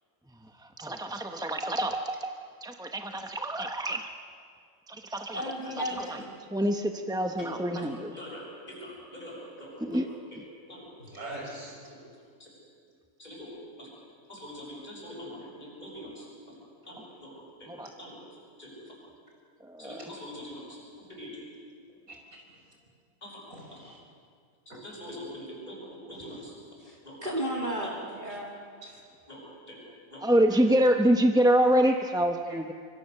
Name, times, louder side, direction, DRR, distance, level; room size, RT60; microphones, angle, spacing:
voice 1, 0.8-4.1 4.9-5.4 5.8-6.2 6.5-8.1 9.8-10.1 10.4-10.5 17.7-17.9 19.6-20.1 30.2-32.7, right 1 dB, 5° right, 5 dB, 0.5 m, -26 dB
voice 2, 5.3-6.3 7.4-10.4 10.7-10.9 12.4-12.5 13.2-13.9 14.3-16.5 16.8-18.2 18.6-18.8 19.8-21.4 23.2-23.4 24.8-26.5 27.0-27.2 27.8-27.9 29.3-29.8 30.1-30.2, left 1 dB, 30° left, -3 dB, 7.1 m, -42 dB
voice 3, 11.0-11.8 22.1-22.2 23.5-24.0 26.1-26.4 28.8-29.0 31.8-32.0 32.5-32.6, right 1 dB, 65° right, -1 dB, 5.5 m, -43 dB
voice 4, 26.8-28.5, right 1 dB, 30° right, -3 dB, 2.7 m, -34 dB
25.0 x 24.0 x 6.7 m, 2.2 s
omnidirectional pair, 1.6 m